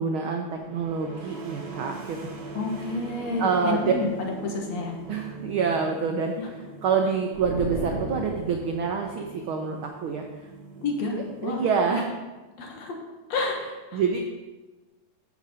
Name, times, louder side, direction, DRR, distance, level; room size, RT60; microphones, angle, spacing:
voice 1, 0.0-2.3 3.4-3.9 5.1-10.3 11.4-12.1 13.6-14.2, right 5 dB, 85° right, 3 dB, 1.1 m, -27 dB
sound 1, 0.5-12.1, right 4 dB, 65° right, 2.4 m, -42 dB
voice 2, 2.5-4.9 6.4-6.5 10.8-11.6 12.6-13.0 13.3-13.6 13.9-14.0, left 3 dB, 65° left, 1 dB, 2.5 m, -29 dB
sound 2, 7.3-8.9, right 2 dB, 25° left, 2.9 m, -33 dB
14.5 x 5.2 x 4.3 m, 1.2 s
omnidirectional pair, 3.3 m